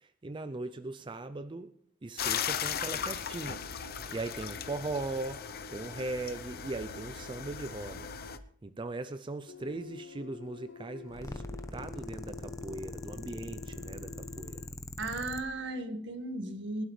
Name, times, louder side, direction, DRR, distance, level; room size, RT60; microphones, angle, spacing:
voice 1, 0.0-1.7 2.0-8.1 8.6-14.7, right 2 dB, 25° right, 10 dB, 0.5 m, -39 dB
sound 1, 2.2-8.4, left 7 dB, 50° left, 0.8 m, -37 dB
sound 2, 9.5-14.7, left 6 dB, 85° left, 0.6 m, -48 dB
sound 3, 11.1-15.4, left 1 dB, 15° left, 0.9 m, -42 dB
voice 2, 15.0-16.8, right 2 dB, 65° right, 7 dB, 1.7 m, -36 dB
23.5 x 11.5 x 3.3 m, 0.65 s
head